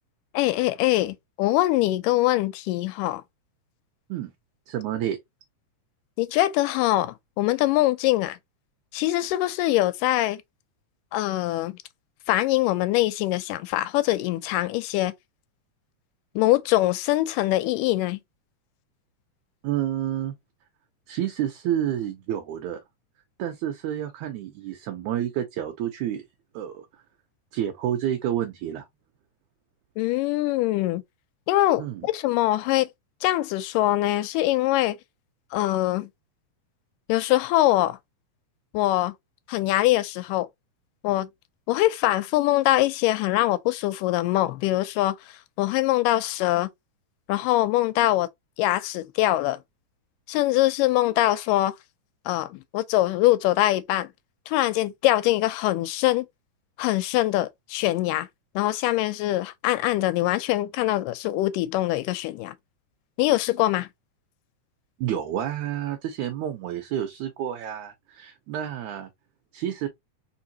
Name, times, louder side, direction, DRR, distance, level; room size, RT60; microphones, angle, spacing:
voice 1, 0.3-3.2 6.2-8.4 8.9-10.4 11.1-11.8 12.3-15.1 16.4-18.2 30.0-31.0 31.5-32.9 33.2-35.0 35.5-36.1 37.1-38.0 38.7-39.1 39.5-40.5 41.0-41.3 41.7-45.2 45.6-46.7 47.3-48.3 48.6-49.6 50.3-51.7 52.3-54.1 54.5-56.3 56.8-58.3 58.6-62.5 63.2-63.9, left 16 dB, 90° left, 2.2 m, -23 dB
voice 2, 4.7-5.2 19.6-20.3 21.1-22.8 23.4-26.2 26.5-26.9 27.5-28.9 31.8-32.1 65.0-69.1 69.5-69.9, right 11 dB, 75° right, 2.0 m, -29 dB
4.6 x 3.5 x 2.8 m
omnidirectional pair, 3.7 m